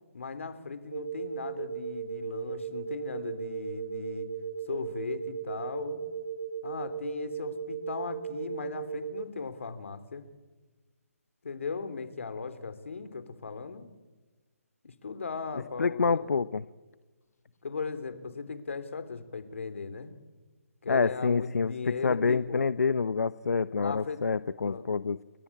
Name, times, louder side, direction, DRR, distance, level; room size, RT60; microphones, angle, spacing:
voice 1, 0.1-4.3 4.7-6.0 6.6-10.3 11.4-13.9 14.8-16.2 17.6-20.1 20.8-22.7 23.8-24.2 24.7-24.9, left 5 dB, 55° left, 11 dB, 3.4 m, -38 dB
sound 1, 0.9-9.2, right 7 dB, 30° right, 0.9 m, -37 dB
voice 2, 15.8-16.6 20.9-25.2, left 5 dB, 85° left, 14 dB, 0.8 m, -27 dB
29.5 x 21.5 x 8.7 m, 1.3 s
hypercardioid pair, 180°, 8 cm